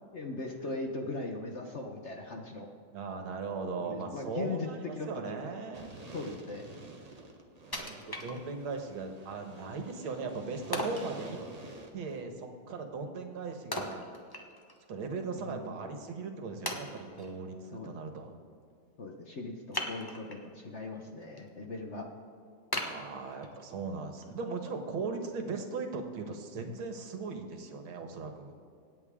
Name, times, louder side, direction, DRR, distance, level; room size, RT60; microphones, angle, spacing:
voice 1, 0.1-2.7 3.8-4.7 4.9-5.5 6.1-6.6 15.4-15.8 17.7-18.0 19.0-22.1, left 3 dB, 45° left, 2 dB, 1.0 m, -39 dB
voice 2, 2.9-5.9 7.7-11.4 11.9-14.1 14.9-18.4 22.8-28.5, right 4 dB, 90° right, 5 dB, 2.1 m, -38 dB
sound 1, 5.7-12.2, right 2 dB, 25° right, 1.0 m, -49 dB
Wood, 7.7-8.8 9.3-9.4 10.7-11.1 13.7-14.8 15.2-15.3 15.9-16.0 16.7-17.3 19.7-20.5 21.0-21.4 21.8-21.9 22.7-23.7 24.2-24.3, left 1 dB, 20° left, 0.7 m, -38 dB
25.5 x 9.0 x 3.7 m, 2.3 s
omnidirectional pair, 2.2 m